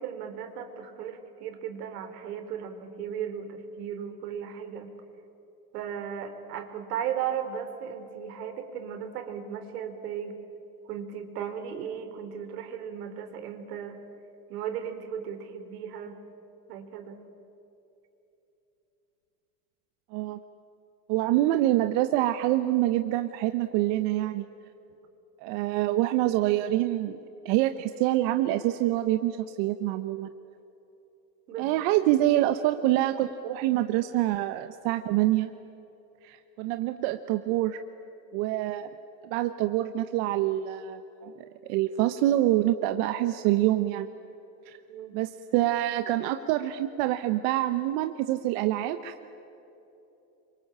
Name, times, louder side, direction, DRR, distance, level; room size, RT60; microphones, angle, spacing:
voice 1, 0.0-4.9 5.7-10.3 10.9-14.0 14.5-16.2 16.7-17.2 31.5-31.7 44.9-45.2, right 8 dB, 85° right, 7 dB, 4.0 m, -36 dB
voice 2, 21.1-24.4 25.4-27.2 27.4-30.3 31.6-35.5 36.2-37.8 38.3-38.9 39.2-41.3 41.6-44.1 44.7-44.8 45.1-49.1, right 14 dB, 60° right, 9 dB, 1.2 m, -26 dB
27.5 x 24.5 x 8.8 m, 3.0 s
supercardioid pair, 130°, 45 cm